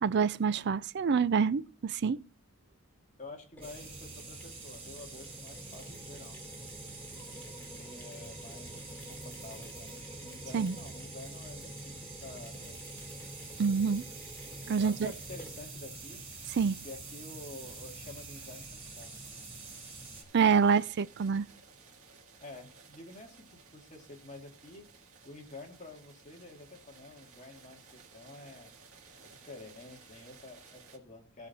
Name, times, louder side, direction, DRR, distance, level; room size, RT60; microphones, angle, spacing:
voice 1, 0.0-2.2 10.5-10.8 13.6-14.0 14.7-15.1 16.5-16.8 20.3-21.5, right 6 dB, 50° right, 0.4 m, -27 dB
voice 2, 3.2-6.4 7.8-12.8 14.8-16.2 16.8-19.2 22.4-24.9 25.2-28.7 29.2-31.5, left 2 dB, 35° left, 2.1 m, -49 dB
Mechanisms, 3.6-15.9, left 1 dB, 10° left, 2.7 m, -52 dB
sound 1, 3.6-20.2, right 3 dB, 30° right, 3.9 m, -46 dB
sound 2, 13.0-31.0, right 5 dB, 85° right, 2.1 m, -58 dB
16.5 x 6.3 x 4.1 m
head